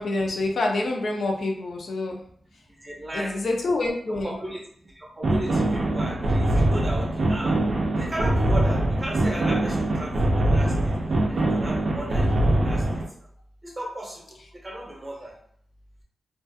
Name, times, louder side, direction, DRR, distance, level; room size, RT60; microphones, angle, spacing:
voice 1, 0.0-2.2 3.1-4.3, left 2 dB, 65° left, 1 dB, 0.5 m, -26 dB
voice 2, 2.8-3.3 4.1-7.5 8.0-10.9 11.3-12.8 13.6-14.2 14.6-15.3, right 1 dB, 20° right, -2 dB, 0.7 m, -35 dB
sound 1, 5.2-13.1, right 1 dB, 55° right, 0.4 m, -23 dB
2.4 x 2.3 x 2.6 m, 0.63 s
wide cardioid pair, 145°, 0 cm